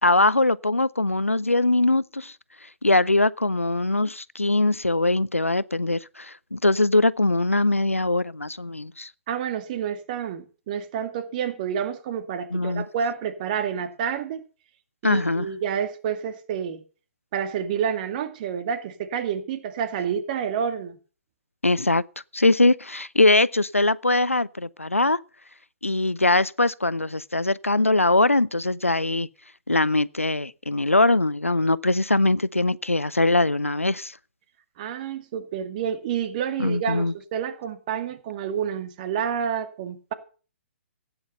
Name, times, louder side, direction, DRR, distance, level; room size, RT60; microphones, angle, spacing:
voice 1, 0.0-2.3 2.8-9.1 12.5-12.9 15.0-15.5 21.6-22.0 22.3-25.2 25.8-29.3 29.7-34.1 36.6-37.1, left 2 dB, 90° left, 0.6 m, -22 dB
voice 2, 9.3-14.4 15.0-16.8 17.3-21.0 34.8-40.1, right 8 dB, 40° right, 2.2 m, -29 dB
16.0 x 9.7 x 5.6 m
figure-of-eight pair, 125°, 7 cm